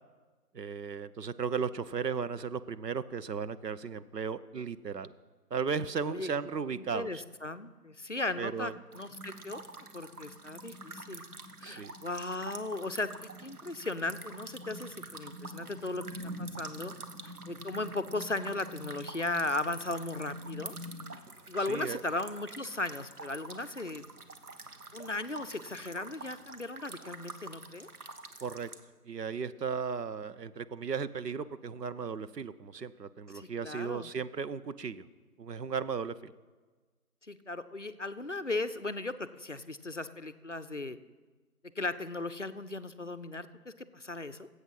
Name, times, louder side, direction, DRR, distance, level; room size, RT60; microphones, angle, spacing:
voice 1, 0.5-5.1 5.5-7.2 8.4-8.7 11.6-11.9 21.7-22.0 28.4-28.7 29.0-35.0 35.4-36.3, right 6 dB, 90° right, 14 dB, 0.8 m, -35 dB
voice 2, 6.7-11.2 11.6-13.1 13.4-16.1 16.4-16.9 17.2-20.8 21.5-24.1 24.9-27.9 33.3-34.1 37.3-41.0 41.8-44.5, left 2 dB, 50° left, 11 dB, 0.5 m, -37 dB
sound 1, 8.9-28.8, right 1 dB, 65° right, 1.3 m, -46 dB
16.5 x 8.1 x 5.5 m, 1.3 s
figure-of-eight pair, 180°, 47 cm